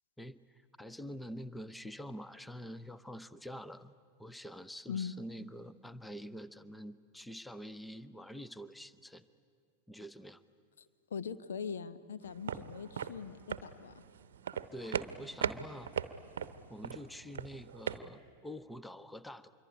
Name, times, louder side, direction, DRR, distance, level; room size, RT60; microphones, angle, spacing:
voice 1, 0.2-3.9 4.2-9.2 9.9-10.4 14.7-15.9 16.7-19.5, equal, 5° left, 14 dB, 0.8 m, -46 dB
voice 2, 10.8-14.0, left 6 dB, 65° left, 11 dB, 1.0 m, -41 dB
sound 1, 12.2-18.0, right 8 dB, 60° right, 0.9 m, -39 dB
25.5 x 23.5 x 10.0 m, 2.2 s
figure-of-eight pair, 90°, 0 cm